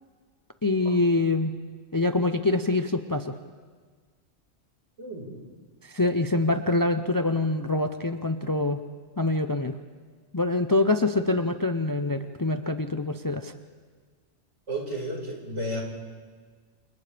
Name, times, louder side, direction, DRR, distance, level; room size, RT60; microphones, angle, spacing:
voice 1, 0.6-1.5 1.9-3.4 5.8-8.8 9.2-9.8 10.3-13.5, left 2 dB, 25° left, 8 dB, 0.5 m, -25 dB
voice 2, 5.0-5.3 14.7-15.8, right 1 dB, 75° right, -2 dB, 5.3 m, -32 dB
29.0 x 28.5 x 3.4 m, 1.5 s
omnidirectional pair, 1.2 m